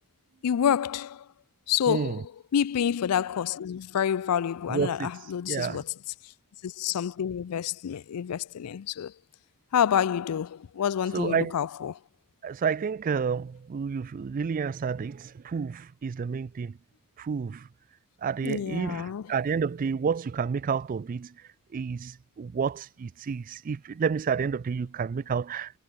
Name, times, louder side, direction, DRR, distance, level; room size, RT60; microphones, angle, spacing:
voice 1, 0.4-1.3 1.7-5.9 6.2-6.3 6.6-9.1 9.7-12.0 18.4-19.3, left 8 dB, 90° left, 0.4 m, -28 dB
voice 2, 1.9-2.2 4.7-5.1 5.5-5.8 11.1-11.5 12.4-16.8 17.2-17.7 18.2-21.3 21.7-25.8, right 6 dB, 40° right, 0.3 m, -30 dB
head